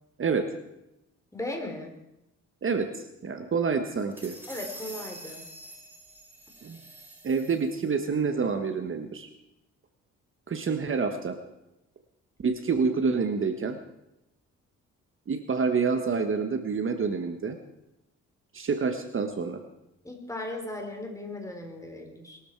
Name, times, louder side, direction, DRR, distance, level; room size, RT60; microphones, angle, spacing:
voice 1, 1.3-1.9 4.5-5.5 20.0-22.4, left 1 dB, 10° left, 3 dB, 4.0 m, -37 dB
voice 2, 2.6-4.4 6.6-6.8 7.2-9.3 10.5-11.4 12.4-13.8 15.3-17.6 18.5-19.6, right 5 dB, 45° right, 7 dB, 1.4 m, -27 dB
sound 1, 3.9-7.9, right 1 dB, 5° right, 4.0 m, -45 dB
21.5 x 13.0 x 4.7 m, 0.90 s
cardioid pair, 90°, 30 cm